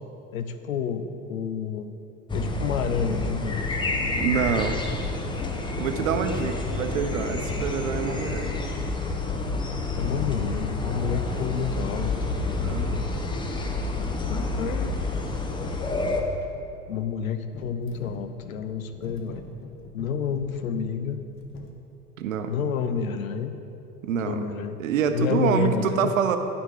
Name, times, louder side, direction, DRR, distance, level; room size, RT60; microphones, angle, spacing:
voice 1, 0.3-1.9 2.3-3.6 9.9-12.1 14.3-15.1 16.9-19.4 19.9-21.2 22.5-23.6 24.2-24.8 25.1-26.1, left 6 dB, 70° left, 9 dB, 0.7 m, -29 dB
sound 1, 2.3-16.2, left 3 dB, 10° left, 0.7 m, -29 dB
voice 2, 4.1-4.8 5.8-8.6 12.6-13.1 22.2-22.5 24.0-24.5 24.8-26.4, right 7 dB, 65° right, 8 dB, 0.8 m, -26 dB
sound 2, 11.4-11.9 12.3-12.8 13.1-16.8 17.5-21.7, left 4 dB, 30° left, 0.9 m, -46 dB
12.0 x 5.2 x 4.9 m, 2.7 s
figure-of-eight pair, 80°, 43 cm